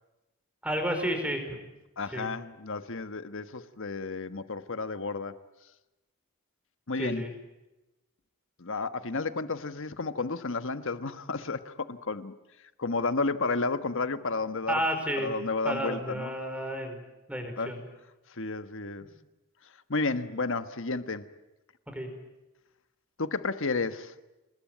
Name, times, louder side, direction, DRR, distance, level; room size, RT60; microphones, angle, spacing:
voice 1, 0.6-1.6 2.1-2.3 7.0-7.3 14.7-15.3 15.6-17.0 17.3-17.8 21.9-22.1, equal, 5° right, 5 dB, 5.1 m, -31 dB
voice 2, 2.0-5.4 6.9-7.3 8.6-12.3 12.8-14.8 15.2-16.3 17.6-17.7 18.3-19.0 19.9-21.3 23.2-24.1, left 3 dB, 60° left, 11 dB, 1.4 m, -32 dB
28.0 x 21.0 x 9.3 m, 1.0 s
head